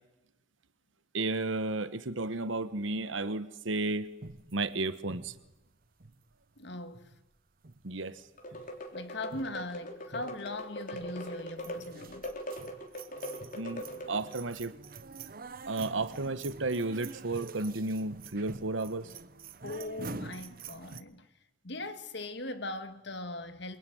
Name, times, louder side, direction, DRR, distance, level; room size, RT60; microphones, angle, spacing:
voice 1, 1.1-4.1 4.5-5.3 7.8-8.2 13.5-13.8 14.1-14.8 15.6-19.1, right 2 dB, 90° right, 1.3 m, -33 dB
sound 1, 4.2-6.6 6.9-7.4 7.6-8.2 8.5-8.8 9.2-9.8 10.1-10.5 10.9-11.3 11.6-21.0, right 4 dB, 50° right, 1.0 m, -47 dB
voice 2, 6.6-7.1 8.9-12.3 19.6-21.3 21.6-23.8, left 2 dB, 65° left, 1.9 m, -40 dB
sound 2, 8.4-14.4, equal, 45° left, 3.9 m, -41 dB
27.5 x 22.5 x 9.4 m
head